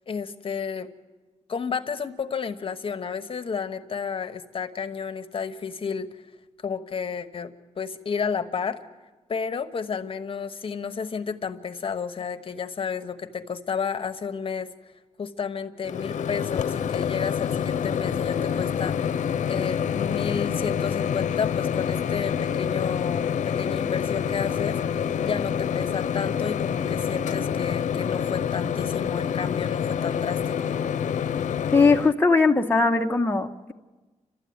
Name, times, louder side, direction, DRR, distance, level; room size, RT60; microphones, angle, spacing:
voice 1, 0.1-0.9 1.5-6.1 6.6-8.8 9.3-14.7 15.2-19.1 19.5-30.7, left 6 dB, 45° left, 9 dB, 1.1 m, -31 dB
Microwave oven, 15.8-32.1, left 8 dB, 85° left, 0.7 m, -27 dB
voice 2, 31.7-33.7, left 3 dB, 15° left, 2 dB, 0.9 m, -20 dB
29.5 x 13.0 x 9.5 m, 1.3 s
wide cardioid pair, 120°, 12 cm